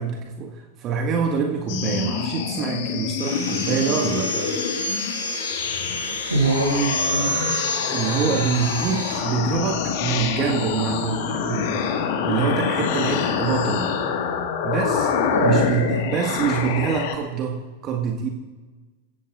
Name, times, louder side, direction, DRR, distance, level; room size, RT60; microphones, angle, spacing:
voice 1, 0.0-4.5 7.9-12.0 12.2-14.0 14.6-18.3, right 6 dB, 35° right, 2 dB, 1.7 m, -25 dB
sound 1, 1.7-17.1, left 7 dB, 50° left, 1.7 m, -26 dB
Sawing, 3.2-9.2, equal, 85° left, 5.6 m, -29 dB
voice 2, 6.3-7.5 15.3-16.5, right 2 dB, 80° right, -1 dB, 5.9 m, -24 dB
26.5 x 16.5 x 2.5 m, 1.3 s
figure-of-eight pair, 90°, 0 cm